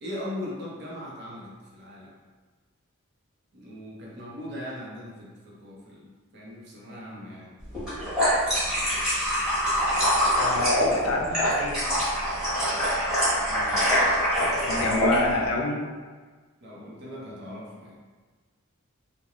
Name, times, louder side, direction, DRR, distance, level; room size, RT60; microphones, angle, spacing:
voice 1, 0.0-2.1 3.5-7.5 13.5-13.8 14.7-15.5 16.6-18.0, left 1 dB, 50° right, -5 dB, 0.6 m, -39 dB
sound 1, 7.7-15.2, equal, 5° right, 0.9 m, -24 dB
voice 2, 10.4-11.9 14.7-15.8, left 2 dB, 90° left, 0 dB, 0.4 m, -27 dB
2.4 x 2.0 x 2.9 m, 1.4 s
head